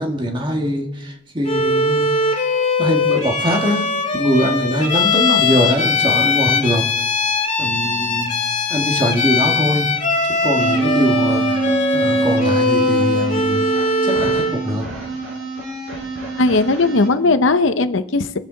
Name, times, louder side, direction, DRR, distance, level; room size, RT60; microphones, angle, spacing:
voice 1, 0.0-2.1 2.8-3.9 4.1-6.8 7.6-8.3 8.7-9.9 10.4-13.7 14.0-14.8, equal, 25° right, 2 dB, 1.7 m, -22 dB
Bowed string instrument, 1.5-14.6, left 3 dB, 40° left, 2.2 m, -20 dB
sound 1, 10.6-17.1, right 3 dB, 90° right, 5.7 m, -24 dB
voice 2, 16.4-18.4, left 3 dB, 75° left, 11 dB, 0.8 m, -17 dB
24.0 x 8.1 x 4.0 m, 0.87 s
head